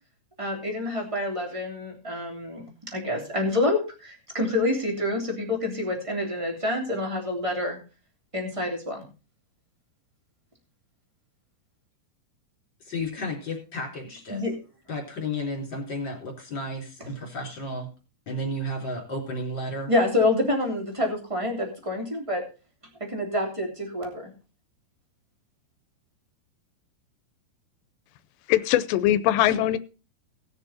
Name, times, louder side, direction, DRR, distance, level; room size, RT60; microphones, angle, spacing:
voice 1, 0.4-7.8 8.3-9.1 14.3-14.5 19.9-22.4 23.1-24.3, left 2 dB, 10° right, 1 dB, 2.5 m, -27 dB
voice 2, 12.8-14.4 14.9-17.9 18.3-19.9, left 1 dB, 30° left, 1 dB, 3.9 m, -32 dB
voice 3, 28.5-29.8, left 13 dB, 85° left, 14 dB, 3.0 m, -21 dB
19.0 x 6.8 x 4.2 m, 0.33 s
omnidirectional pair, 4.8 m